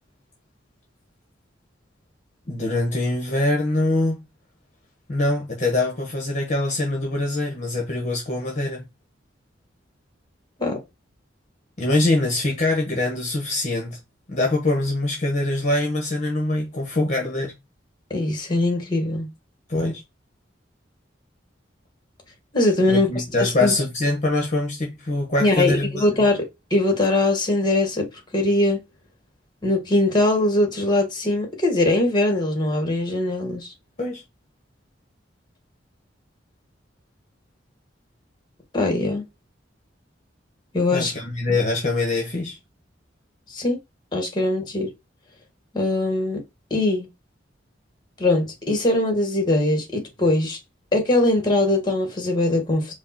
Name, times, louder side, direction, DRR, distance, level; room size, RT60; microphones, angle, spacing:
voice 1, 2.5-4.2 5.1-8.8 11.8-14.0 14.3-17.5 19.7-20.0 22.9-26.1 34.0-34.2 40.9-42.6, left 2 dB, 40° left, 1.3 m, -23 dB
voice 2, 18.1-19.3 22.5-23.7 25.4-28.1 28.3-28.8 29.6-33.7 38.7-39.2 40.7-41.1 41.5-41.6 43.5-43.8 44.1-44.9 45.7-46.4 46.7-47.1 48.2-50.6 50.9-52.9, left 2 dB, 25° left, 1.7 m, -21 dB
5.0 x 2.4 x 4.3 m
head